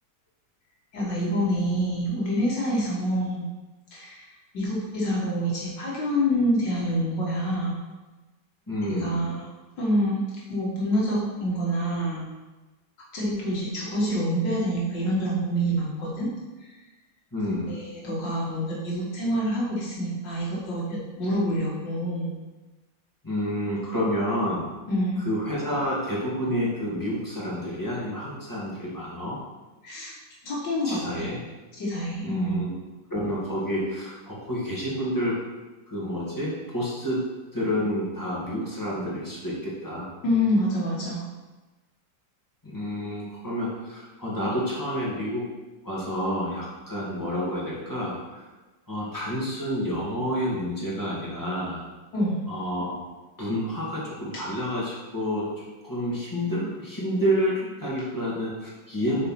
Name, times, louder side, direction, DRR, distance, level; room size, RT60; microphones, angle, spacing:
voice 1, 0.9-3.4 3.9-4.3 4.5-7.8 8.9-9.3 9.8-10.2 10.5-12.2 13.1-16.3 17.7-22.3 24.9-25.3 29.8-30.1 30.4-31.3 31.8-32.6 40.2-41.2 52.1-52.4, equal, 75° left, -5 dB, 2.5 m, -26 dB
voice 2, 8.7-9.2 17.3-17.7 23.2-24.6 25.2-29.4 30.8-31.4 32.2-32.7 33.1-35.4 35.9-40.1 42.6-45.5 45.8-48.5 48.9-51.8 52.4-53.0 53.4-59.3, equal, 10° left, -7 dB, 2.4 m, -29 dB
8.7 x 4.4 x 5.9 m, 1.2 s
omnidirectional pair, 2.0 m